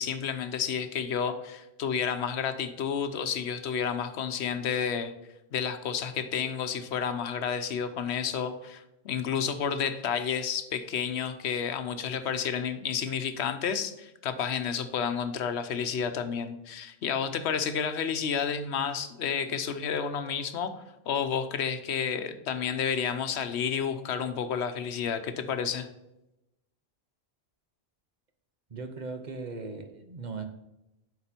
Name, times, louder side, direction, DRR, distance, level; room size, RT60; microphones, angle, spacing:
voice 1, 0.0-5.1 5.5-20.7 21.1-25.9, left 7 dB, 90° left, 10 dB, 1.0 m, -31 dB
voice 2, 28.7-30.5, right 4 dB, 45° right, 7 dB, 0.9 m, -38 dB
11.0 x 4.4 x 4.3 m, 0.91 s
omnidirectional pair, 1.1 m